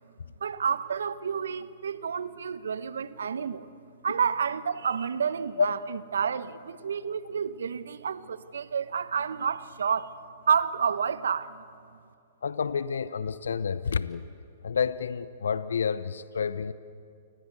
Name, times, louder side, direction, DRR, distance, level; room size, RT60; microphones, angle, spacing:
voice 1, 0.4-3.7 4.0-5.8 6.1-10.1 10.5-11.6, right 6 dB, 75° right, 15 dB, 1.0 m, -29 dB
voice 2, 12.4-14.3 14.6-16.7, left 6 dB, 75° left, 15 dB, 0.8 m, -29 dB
29.0 x 19.5 x 8.3 m, 2.5 s
hypercardioid pair, 120°, 0 cm